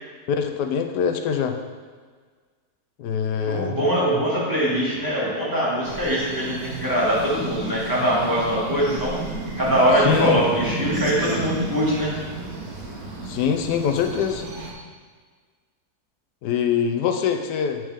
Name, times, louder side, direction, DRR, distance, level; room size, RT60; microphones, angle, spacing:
voice 1, 0.3-1.6 3.0-3.7 10.0-10.4 13.2-14.4 16.4-17.8, left 7 dB, 85° left, 5 dB, 1.2 m, -23 dB
voice 2, 3.5-9.1 9.6-12.1, equal, 10° right, -8 dB, 2.0 m, -22 dB
sound 1, 5.8-14.7, right 3 dB, 65° right, 1.6 m, -32 dB
8.1 x 6.2 x 3.6 m, 1.5 s
omnidirectional pair, 1.7 m